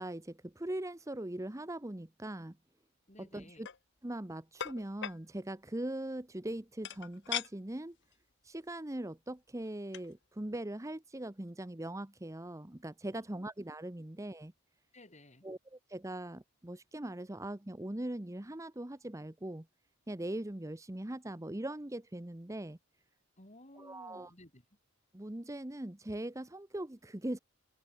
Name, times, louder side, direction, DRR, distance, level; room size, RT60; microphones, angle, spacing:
voice 1, 0.0-2.6 3.2-3.7 4.0-8.0 8.4-14.5 15.4-19.7 20.1-22.8 23.7-24.3 25.1-27.4, right 1 dB, 15° right, 0.9 m, -41 dB
voice 2, 3.1-3.6 13.4-13.5 14.9-15.5 23.4-24.6, left 1 dB, 30° left, 5.8 m, -56 dB
sound 1, 3.4-3.8 4.6-5.2 6.8-7.5 8.0-8.1 8.5-8.7 9.7-9.8 9.9-10.1, left 10 dB, 55° left, 1.2 m, -39 dB
head